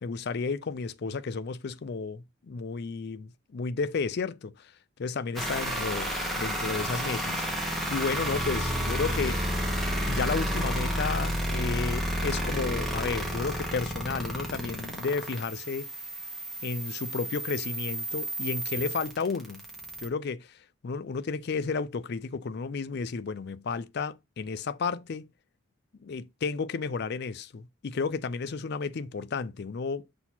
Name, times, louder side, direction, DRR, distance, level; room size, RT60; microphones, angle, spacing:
voice 1, 0.0-4.7 5.0-7.4 7.9-9.4 10.1-15.9 16.6-19.6 20.0-20.6 20.8-25.3 26.0-30.1, left 4 dB, 50° left, 0.4 m, -32 dB
sound 1, 5.3-20.1, equal, ahead, 1.3 m, -31 dB
6.2 x 2.9 x 5.6 m
head